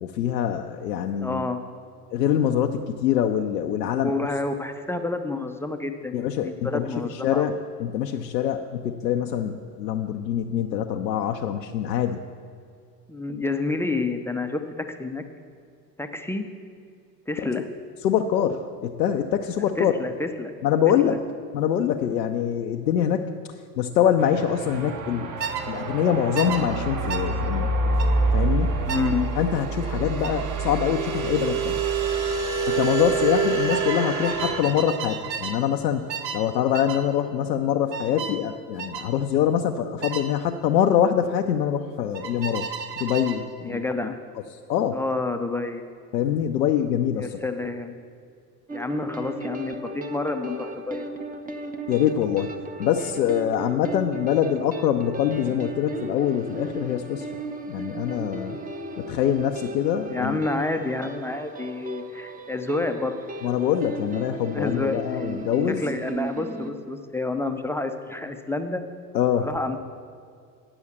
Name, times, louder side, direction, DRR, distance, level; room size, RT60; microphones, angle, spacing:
voice 1, 0.0-1.4 2.1-4.1 6.1-7.5 7.8-12.2 18.0-19.9 20.6-21.2 21.5-23.3 23.8-25.3 25.7-27.7 28.3-28.7 29.4-31.8 32.7-36.0 36.3-42.7 43.0-43.8 44.7-45.0 46.1-47.4 51.9-52.5 52.8-57.3 57.7-58.6 59.0-60.4 63.4-65.8 69.1-69.5, left 9 dB, 85° left, 5 dB, 0.6 m, -24 dB
voice 2, 1.2-1.6 4.0-7.6 13.1-15.2 16.0-16.4 17.3-17.6 19.8-20.5 21.0-21.2 28.9-29.3 43.6-44.2 44.9-45.8 47.2-48.0 48.7-51.1 60.1-63.2 64.5-65.3 65.7-68.8 69.4-69.8, left 3 dB, 5° left, 6 dB, 0.5 m, -29 dB
sound 1, 24.2-34.6, right 3 dB, 40° right, 1.4 m, -26 dB
sound 2, 25.4-25.7 26.4-26.6 27.1-27.3 28.0-28.2 28.9-29.1 30.2-30.4 31.9-32.1 32.4-32.8 33.7-35.6 36.1-36.5 36.7-37.0 37.9-38.4 38.8-39.1 40.0-40.3 42.1-43.4, right 6 dB, 80° right, 1.0 m, -33 dB
sound 3, 48.7-66.7, right 2 dB, 15° right, 0.8 m, -36 dB
9.8 x 6.3 x 7.0 m, 2.3 s
hypercardioid pair, 75°, 49 cm